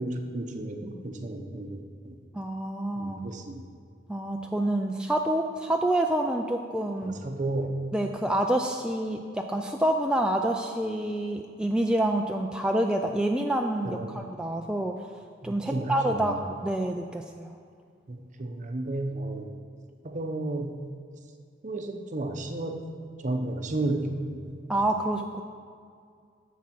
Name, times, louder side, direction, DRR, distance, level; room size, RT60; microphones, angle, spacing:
voice 1, 0.0-1.8 2.0-2.1 3.0-3.6 7.2-7.8 13.8-14.2 15.4-16.2 18.1-19.5 20.0-20.8 21.6-22.8 23.2-24.6, right 2 dB, 40° right, 4 dB, 0.7 m, -32 dB
voice 2, 2.3-3.2 4.1-7.1 7.9-15.1 15.4-17.5 24.7-25.4, right 1 dB, 5° right, 2 dB, 0.3 m, -27 dB
9.9 x 7.3 x 4.4 m, 2.2 s
head